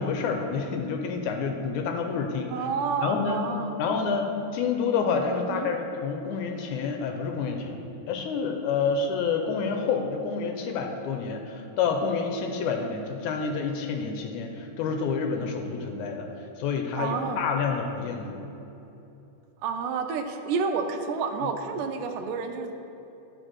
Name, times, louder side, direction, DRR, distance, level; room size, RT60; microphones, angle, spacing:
voice 1, 0.0-2.7 3.0-3.4 3.8-7.8 8.1-16.3 16.6-18.4 21.4-21.5, left 5 dB, 80° left, 4 dB, 2.0 m, -28 dB
voice 2, 2.5-3.7 5.5-5.7 17.0-17.4 19.6-22.7, right 5 dB, 85° right, 6 dB, 2.2 m, -29 dB
9.1 x 4.9 x 6.1 m, 3.0 s
omnidirectional pair, 3.7 m